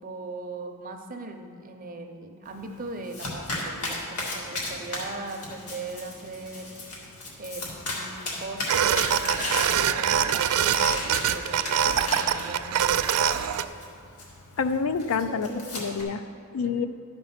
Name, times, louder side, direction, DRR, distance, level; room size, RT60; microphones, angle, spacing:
voice 1, 0.0-6.7 7.4-13.6 16.6-16.9, right 2 dB, 40° right, 5 dB, 0.7 m, -39 dB
Domestic sounds home sounds, 2.5-16.0, left 2 dB, 85° left, 2.0 m, -36 dB
sound 1, 8.7-13.7, right 9 dB, 80° right, 0.4 m, -24 dB
voice 2, 14.6-16.2 16.5-16.9, left 5 dB, 65° left, 11 dB, 0.4 m, -27 dB
11.5 x 5.3 x 5.8 m, 2.3 s
head